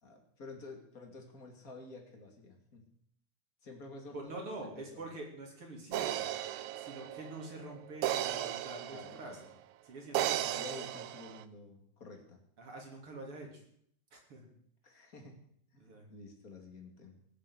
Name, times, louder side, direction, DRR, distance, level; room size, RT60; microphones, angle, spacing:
voice 1, 0.0-2.9 3.6-4.4 4.8-5.0 8.8-9.4 10.5-12.4 14.8-15.4 15.7-17.2, left 3 dB, 30° left, 3 dB, 2.6 m, -50 dB
voice 2, 4.1-6.3 6.8-9.5 9.8-10.6 12.6-13.6 14.1-14.5 15.8-16.1, right 2 dB, 40° right, 1 dB, 3.7 m, -45 dB
sound 1, 5.9-9.4 10.1-11.4, right 13 dB, 75° right, 1.8 m, -35 dB
19.0 x 7.5 x 8.0 m, 0.68 s
omnidirectional pair, 3.8 m